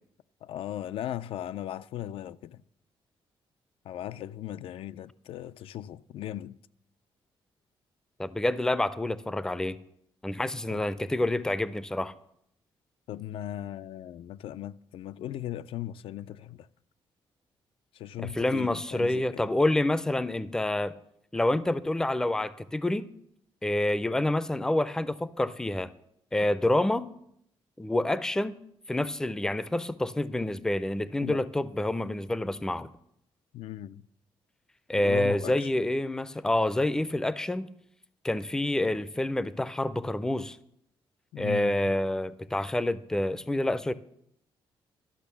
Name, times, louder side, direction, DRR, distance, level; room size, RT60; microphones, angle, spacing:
voice 1, 0.4-2.6 3.8-6.6 10.7-10.8 13.1-16.7 17.9-19.4 31.2-31.4 33.5-34.0 34.9-35.7 41.3-42.0, left 12 dB, 75° left, 0.3 m, -38 dB
voice 2, 8.2-9.8 10.2-12.1 18.2-20.9 21.3-23.1 23.6-25.9 26.3-27.1 27.8-28.6 28.9-32.9 34.9-37.7 38.2-40.6 41.4-43.9, left 1 dB, 5° left, 0.4 m, -28 dB
12.5 x 6.0 x 6.9 m
cardioid pair, 130°, 9 cm